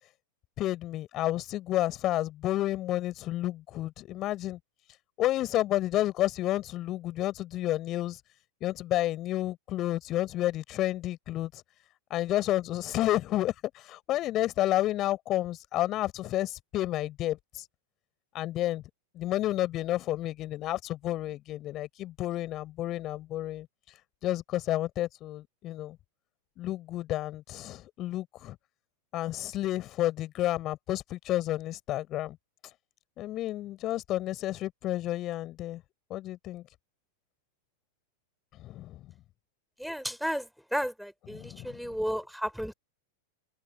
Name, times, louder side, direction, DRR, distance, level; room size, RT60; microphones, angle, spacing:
voice 1, 0.6-4.6 5.2-8.2 8.6-11.6 12.1-17.6 18.3-18.8 19.1-23.7 24.2-26.0 26.6-28.6 29.1-32.4 33.2-35.8 36.1-36.6 38.6-39.1 41.3-41.9, left 14 dB, 35° left, 5.4 m, -31 dB
voice 2, 39.8-40.5 40.7-42.7, equal, ahead, 4.4 m, -33 dB
open air
figure-of-eight pair, 90°, 0 cm